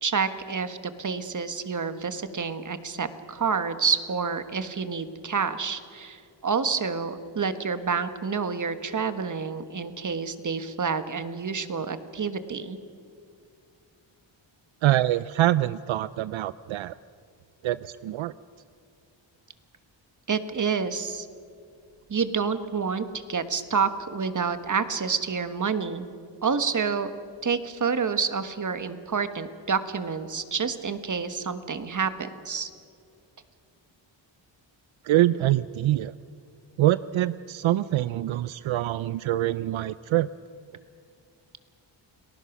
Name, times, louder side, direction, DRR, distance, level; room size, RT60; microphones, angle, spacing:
voice 1, 0.0-12.8 20.3-21.3 22.1-26.1 26.4-27.1 27.4-32.7, right 5 dB, 40° right, 10 dB, 1.4 m, -28 dB
voice 2, 14.8-17.0 17.6-18.3 35.0-36.1 36.8-40.3, right 14 dB, 80° right, 16 dB, 0.5 m, -24 dB
30.0 x 19.5 x 6.1 m, 2.4 s
wide cardioid pair, 95°, 47 cm